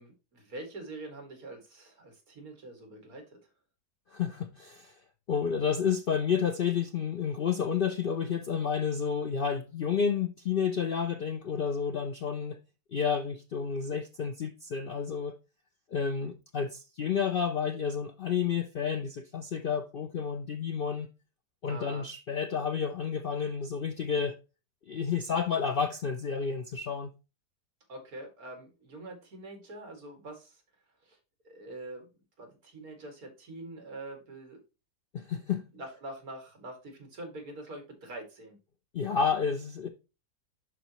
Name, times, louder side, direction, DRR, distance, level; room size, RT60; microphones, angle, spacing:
voice 1, 0.0-3.4 21.7-22.1 27.9-30.6 31.0-31.2 31.4-32.1 32.4-34.6 35.7-38.6, right 2 dB, 65° right, 2.6 m, -44 dB
voice 2, 4.1-4.9 5.3-12.6 12.9-15.4 15.9-21.1 21.6-24.4 24.9-27.1 35.1-35.6 38.9-39.9, left 6 dB, 85° left, 0.4 m, -30 dB
11.0 x 4.0 x 3.0 m
omnidirectional pair, 1.6 m